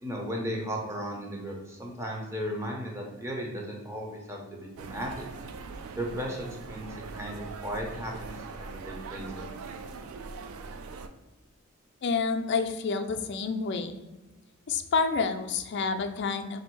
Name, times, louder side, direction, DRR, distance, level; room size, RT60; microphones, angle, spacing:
voice 1, 0.0-5.1 6.0-9.5, equal, 15° right, -1 dB, 0.6 m, -36 dB
sound 1, 4.8-11.1, right 4 dB, 85° right, 0.4 m, -41 dB
voice 2, 12.0-14.0 14.7-16.6, left 4 dB, 55° left, 7 dB, 0.4 m, -29 dB
3.6 x 2.6 x 4.4 m, 1.1 s
head